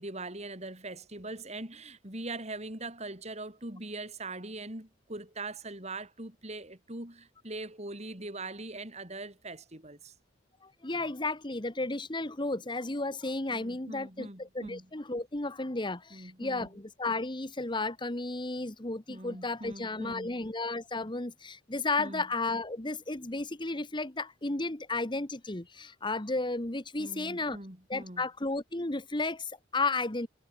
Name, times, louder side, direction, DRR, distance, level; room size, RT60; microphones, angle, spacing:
voice 1, 0.0-10.1 13.5-14.9 16.1-16.7 19.1-20.4 22.0-22.2 27.0-28.2, right 2 dB, 35° right, 4.9 m, -42 dB
voice 2, 10.6-27.6 27.9-30.3, left 3 dB, 25° left, 1.4 m, -33 dB
head